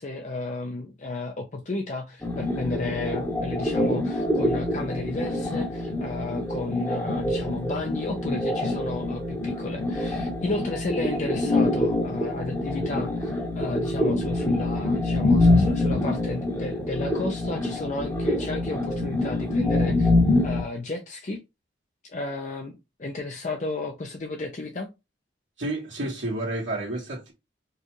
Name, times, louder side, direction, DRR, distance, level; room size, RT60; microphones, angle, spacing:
voice 1, 0.0-20.1 20.4-21.4 22.0-24.9, left 2 dB, 40° left, 0.5 m, -33 dB
sound 1, 2.2-20.6, left 2 dB, 15° left, 1.0 m, -25 dB
voice 2, 25.6-27.3, right 1 dB, 80° right, 1.4 m, -30 dB
4.5 x 2.3 x 3.0 m
head